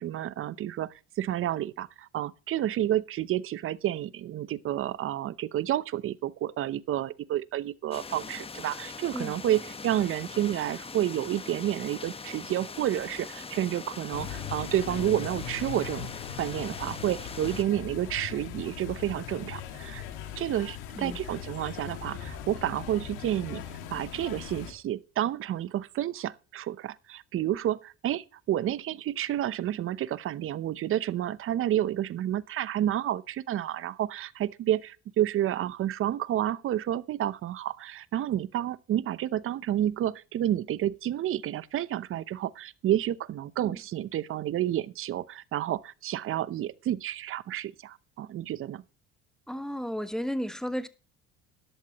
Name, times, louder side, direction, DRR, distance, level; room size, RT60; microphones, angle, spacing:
voice 1, 0.0-16.1 16.4-20.0 20.4-23.6 23.9-48.8, right 12 dB, 45° right, 0.8 m, -30 dB
sound 1, 7.9-17.6, left 4 dB, 20° left, 1.2 m, -42 dB
sound 2, 14.1-24.7, left 9 dB, 85° left, 2.2 m, -40 dB
voice 2, 49.5-50.9, equal, ahead, 1.3 m, -33 dB
13.5 x 11.5 x 3.0 m
supercardioid pair, 100°, 29 cm